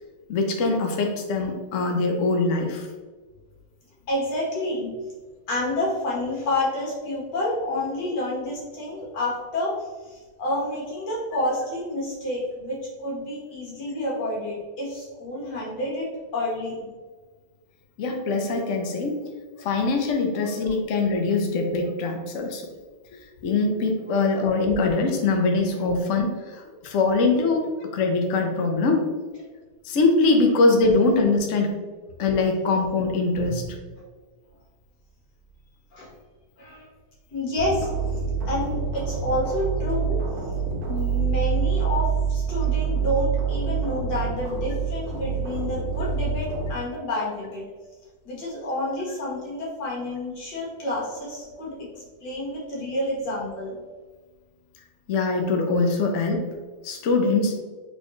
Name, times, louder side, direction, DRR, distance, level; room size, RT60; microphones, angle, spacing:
voice 1, 0.3-2.8 18.0-19.2 19.6-22.6 23.4-29.0 29.9-31.7 32.2-33.6 55.1-56.4 56.8-57.6, left 3 dB, 90° left, 2 dB, 0.6 m, -22 dB
voice 2, 4.1-4.9 5.5-16.9 20.4-20.5 31.7-31.8 33.3-33.5 34.0-34.1 35.9-36.1 36.6-36.9 37.3-37.9 38.5-40.2 40.9-47.6 48.3-53.8, left 1 dB, 55° left, -5 dB, 2.0 m, -29 dB
sound 1, 37.6-46.7, right 5 dB, 65° right, 1.0 m, -26 dB
4.2 x 3.7 x 3.0 m, 1.4 s
omnidirectional pair, 2.3 m